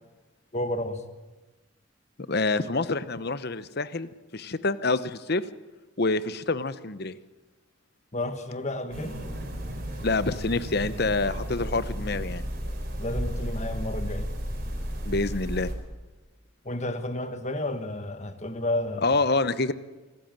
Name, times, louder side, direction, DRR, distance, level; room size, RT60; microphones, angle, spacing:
voice 1, 0.5-1.0 8.1-9.3 9.9-10.0 13.0-14.3 16.6-19.1, left 1 dB, 35° left, 9 dB, 1.5 m, -31 dB
voice 2, 2.3-5.4 6.0-7.2 10.0-12.4 15.1-15.7 19.0-19.7, left 3 dB, 50° left, 14 dB, 0.9 m, -27 dB
sound 1, 8.9-15.8, equal, 45° right, 4.0 m, -33 dB
25.0 x 14.5 x 9.0 m, 1.2 s
head